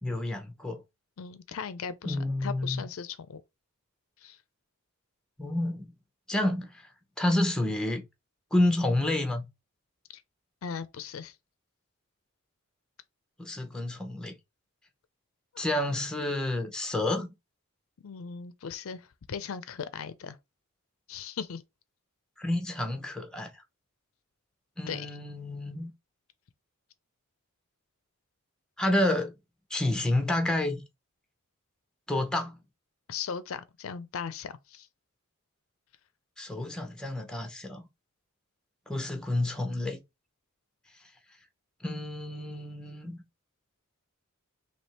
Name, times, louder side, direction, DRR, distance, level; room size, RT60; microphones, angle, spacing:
voice 1, 0.0-0.8 2.0-2.8 5.4-5.9 6.3-6.8 7.2-8.0 8.5-9.5 13.4-14.4 15.6-17.3 22.4-23.5 24.8-25.9 28.8-29.3 29.7-30.8 32.1-32.6 36.4-37.8 38.9-40.0 41.8-43.2, left 1 dB, 5° left, 0.7 m, -29 dB
voice 2, 1.2-3.4 4.2-4.4 10.1-10.2 10.6-11.4 15.5-15.6 18.0-20.4 21.1-21.6 24.9-25.2 33.1-34.9, left 6 dB, 65° left, 0.5 m, -38 dB
3.4 x 2.9 x 4.1 m
head